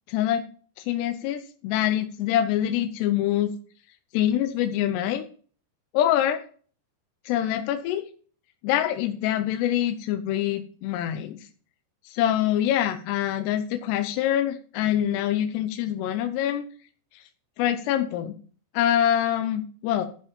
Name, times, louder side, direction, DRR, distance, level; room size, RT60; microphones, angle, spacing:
voice 1, 0.1-0.4 0.8-3.5 4.1-5.2 5.9-6.4 7.3-8.0 8.6-11.4 12.1-16.7 17.1-17.2 17.6-18.3 18.7-20.1, left 11 dB, 80° left, 7 dB, 2.6 m, -25 dB
13.5 x 5.5 x 5.2 m, 0.43 s
omnidirectional pair, 5.3 m